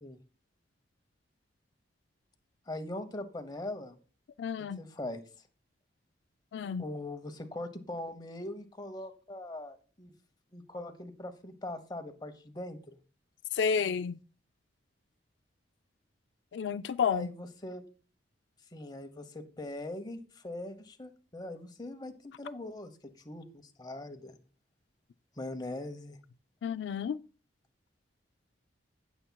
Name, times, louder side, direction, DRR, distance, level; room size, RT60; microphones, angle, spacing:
voice 1, 2.7-4.0 4.8-5.2 6.8-10.1 10.5-13.0 17.1-17.8 18.7-24.4 25.4-26.2, left 1 dB, 25° left, 0.9 m, -41 dB
voice 2, 4.4-4.8 6.5-6.8 13.5-14.1 16.5-17.3 26.6-27.2, left 6 dB, 75° left, 0.3 m, -30 dB
17.5 x 7.1 x 2.3 m
head